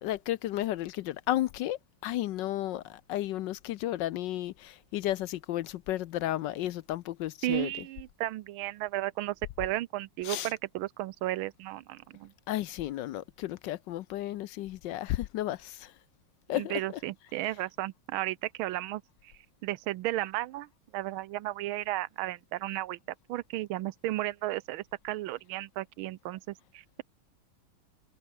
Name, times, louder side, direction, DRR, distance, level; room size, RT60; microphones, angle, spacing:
voice 1, 0.0-7.7 10.2-10.5 12.5-15.9 16.5-16.8, left 14 dB, 70° left, 1.2 m, -33 dB
voice 2, 7.4-12.3 16.5-19.0 19.6-20.7 20.9-23.0 23.3-27.0, right 16 dB, 85° right, 1.5 m, -34 dB
omnidirectional pair, 2.2 m